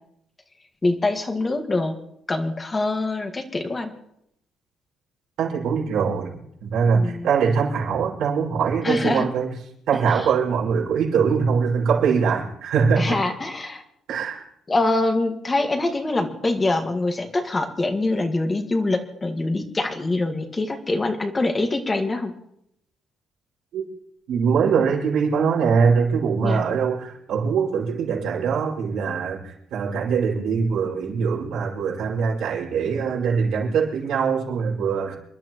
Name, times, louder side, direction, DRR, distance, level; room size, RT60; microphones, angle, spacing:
voice 1, 0.8-2.0 2.3-3.9 6.9-7.3 8.8-9.3 13.0-13.8 14.7-22.3 26.4-26.8, left 2 dB, 20° left, 4 dB, 1.8 m, -24 dB
voice 2, 5.4-6.3 6.6-9.5 9.9-13.2 14.1-14.4 23.7-23.9 24.3-35.2, right 6 dB, 75° right, -3 dB, 5.4 m, -22 dB
28.5 x 12.0 x 3.1 m, 0.73 s
cardioid pair, 130°, 0 cm